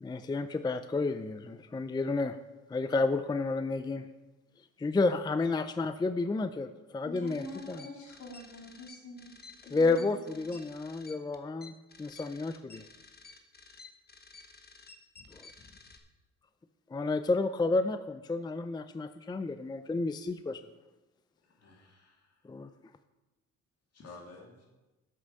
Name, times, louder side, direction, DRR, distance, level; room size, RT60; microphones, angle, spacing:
voice 1, 0.0-2.4 2.7-4.1 4.8-7.8 9.7-12.8 15.3-15.4 16.9-20.6 22.5-22.7, left 3 dB, 15° left, 11 dB, 0.4 m, -31 dB
voice 2, 7.0-9.3 9.6-10.4, left 2 dB, 70° left, -1 dB, 3.0 m, -45 dB
sound 1, 7.3-16.0, left 4 dB, 30° left, 1.2 m, -53 dB
voice 3, 21.4-22.4 23.9-24.7, left 3 dB, 55° left, -1 dB, 2.9 m, -52 dB
8.3 x 7.6 x 6.5 m, 1.1 s
cardioid pair, 90°, 30 cm